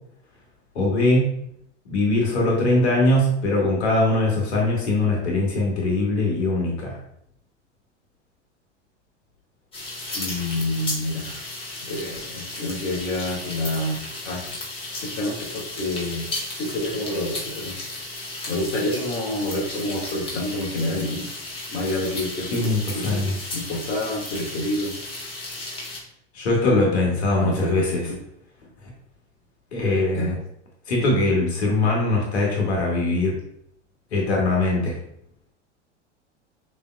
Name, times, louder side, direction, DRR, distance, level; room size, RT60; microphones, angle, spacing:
voice 1, 0.7-1.3 1.9-7.0 22.5-23.4 26.3-28.1 29.7-30.4 30.9-33.3 34.1-35.0, left 2 dB, 65° left, -2 dB, 1.5 m, -21 dB
sound 1, 9.7-26.0, left 2 dB, 15° left, 1.6 m, -34 dB
voice 2, 10.1-11.4 11.8-14.0 14.2-14.4 15.0-16.2 16.6-17.8 18.5-21.3 21.7-24.9 27.3-28.2 30.1-30.4, left 1 dB, 35° left, -3 dB, 1.6 m, -28 dB
6.8 x 3.4 x 2.2 m, 0.72 s
figure-of-eight pair, 85°, 36 cm